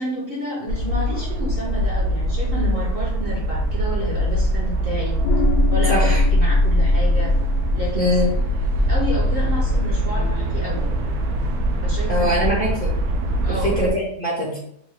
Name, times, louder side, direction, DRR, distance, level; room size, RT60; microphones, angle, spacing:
voice 1, 0.0-5.2 5.7-7.3 7.7-8.3 8.9-11.1 11.8-12.4 13.4-13.7, equal, 50° right, -5 dB, 0.7 m, -30 dB
sound 1, 0.7-13.9, right 1 dB, 75° right, 1.0 m, -23 dB
sound 2, 5.2-10.3, left 1 dB, 80° left, 1.2 m, -21 dB
voice 2, 5.9-6.2 7.9-8.3 12.1-12.9 13.5-14.6, equal, 45° left, -4 dB, 0.7 m, -22 dB
3.4 x 2.2 x 3.4 m, 0.70 s
omnidirectional pair, 1.7 m